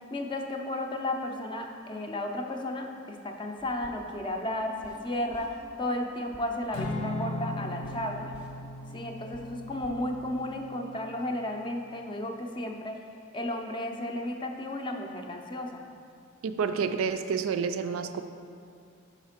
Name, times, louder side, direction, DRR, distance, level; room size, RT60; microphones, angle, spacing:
voice 1, 0.1-8.4 8.9-13.0 13.3-15.9, left 1 dB, 25° left, 3 dB, 0.5 m, -33 dB
sound 1, 3.6-10.7, left 1 dB, 5° right, 0.8 m, -50 dB
Acoustic guitar / Strum, 6.7-11.2, left 1 dB, 80° left, 0.9 m, -38 dB
voice 2, 16.4-18.2, right 6 dB, 70° right, 8 dB, 0.3 m, -29 dB
5.6 x 4.9 x 4.3 m, 2.4 s
head